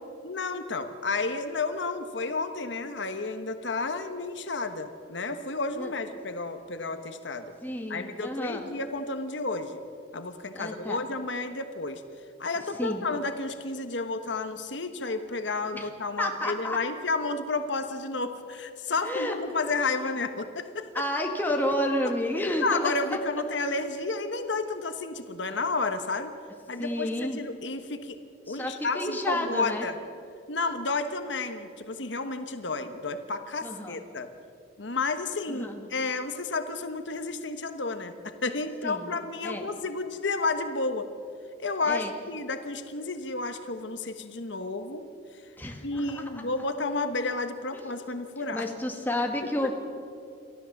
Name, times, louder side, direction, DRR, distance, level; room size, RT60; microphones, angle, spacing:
voice 1, 0.2-7.5 7.9-9.8 10.1-12.0 12.4-20.9 22.0-22.1 22.6-26.3 26.7-28.2 28.5-30.0 30.5-34.3 34.8-41.1 41.6-45.1 45.8-48.7 49.4-49.7, left 3 dB, 70° left, 8 dB, 1.2 m, -31 dB
voice 2, 7.6-8.7 10.5-11.0 12.8-13.1 15.7-15.9 16.2-16.8 19.0-19.3 20.9-22.9 26.8-27.4 28.5-29.9 33.6-34.0 35.5-35.9 38.8-39.1 39.4-39.6 41.9-42.1 45.6-46.5 47.7-47.8 48.5-49.7, left 1 dB, 10° left, 2 dB, 2.0 m, -30 dB
29.0 x 13.5 x 7.2 m, 2.5 s
head